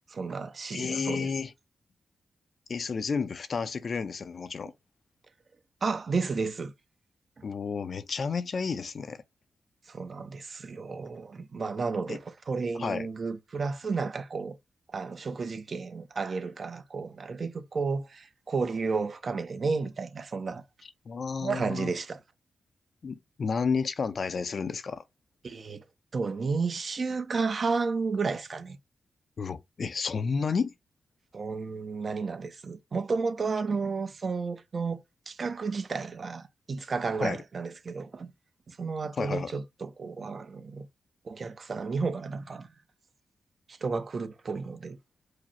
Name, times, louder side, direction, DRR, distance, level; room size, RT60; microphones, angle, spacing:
voice 1, 0.1-1.3 5.8-6.7 9.9-14.6 14.9-20.6 21.4-22.2 25.4-25.8 26.1-28.8 31.3-35.0 35.3-38.3 38.7-40.9 41.2-42.7 43.7-45.0, right 4 dB, 50° right, 0.6 m, -32 dB
voice 2, 0.7-1.5 2.7-4.7 7.4-9.2 12.1-12.2 12.7-13.1 21.1-21.9 23.0-25.0 29.4-30.7 37.2-37.4 39.2-39.5, left 5 dB, 55° left, 0.5 m, -31 dB
4.8 x 2.0 x 4.2 m
wide cardioid pair, 105°, 0 cm